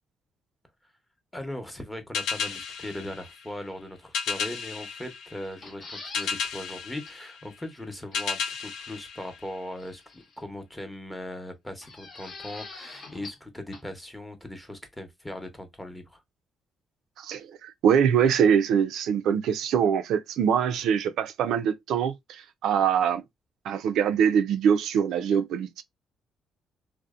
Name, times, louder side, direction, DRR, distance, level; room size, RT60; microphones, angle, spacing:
voice 1, 1.3-16.2, left 1 dB, 10° left, 0.7 m, -39 dB
sound 1, 2.1-10.0, left 6 dB, 85° left, 0.3 m, -34 dB
sound 2, 5.4-6.3 6.7-6.8 7.1-7.2 8.1-8.5 9.8-10.4 11.8-13.5 13.7-13.8, left 3 dB, 55° left, 0.8 m, -44 dB
voice 2, 17.2-23.2 23.6-25.8, right 8 dB, 80° right, 0.3 m, -24 dB
2.6 x 2.0 x 2.3 m
cardioid pair, 90°, 0 cm